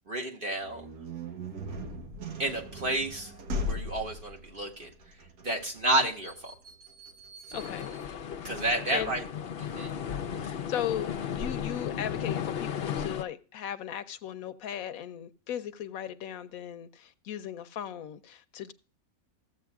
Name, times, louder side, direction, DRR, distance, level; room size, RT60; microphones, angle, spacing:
voice 1, 0.1-0.9 2.4-3.3 3.6-6.5 8.4-9.2 9.6-9.9, right 1 dB, 40° right, 2.1 m, -31 dB
sound 1, 0.6-9.3, left 1 dB, 85° right, 1.7 m, -40 dB
voice 2, 7.5-7.9 8.9-9.1 10.3-18.7, left 10 dB, 75° left, 1.1 m, -37 dB
sound 2, 7.5-13.2, left 8 dB, 55° left, 0.8 m, -35 dB
14.5 x 8.1 x 2.3 m
omnidirectional pair, 1.5 m